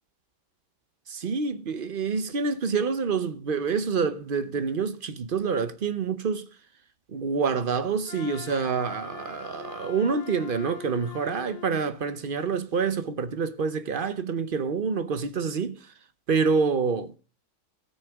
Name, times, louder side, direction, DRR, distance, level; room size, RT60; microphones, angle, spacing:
voice 1, 1.1-6.5 7.1-15.8 16.3-17.1, right 5 dB, 50° right, 0.7 m, -27 dB
Wind instrument woodwind instrument, 8.0-11.8, left 10 dB, 75° left, 1.3 m, -43 dB
18.0 x 6.4 x 3.5 m
omnidirectional pair, 1.7 m